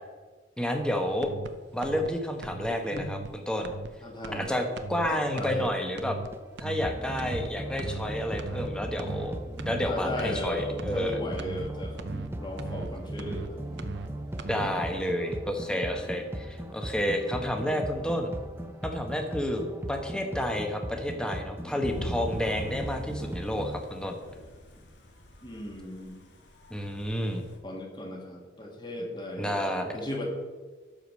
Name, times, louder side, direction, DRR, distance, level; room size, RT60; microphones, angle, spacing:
voice 1, 0.6-1.3 1.7-3.7 4.3-6.2 6.6-9.4 9.7-11.2 14.5-18.3 18.8-19.6 19.9-24.2 26.7-27.4 29.4-29.9, equal, 5° left, 3 dB, 1.1 m, -30 dB
sound 1, 1.2-1.5 1.8-2.1 2.4-2.7 3.0-3.3 3.6-3.9 4.2-4.5 4.8-5.1 5.4-5.7 6.0-6.3 6.6-6.9 7.2-7.5 7.8-8.1 8.4-8.7 9.0-9.3 9.6-9.9 10.2-10.5 10.8-11.1 11.4-11.7 12.0-12.3 12.6-12.9 13.2-13.5 13.8-14.1 14.4-14.7, right 4 dB, 65° right, 0.7 m, -38 dB
voice 2, 4.0-4.6 5.1-5.7 9.9-13.6 14.6-14.9 25.4-26.2 27.6-30.3, left 1 dB, 25° left, 0 dB, 2.0 m, -36 dB
sound 2, 6.3-23.8, right 1 dB, 10° right, 0.6 m, -38 dB
Thunder / Rain, 21.8-27.6, left 1 dB, 65° left, 1.6 m, -42 dB
12.5 x 5.0 x 6.2 m, 1.4 s
head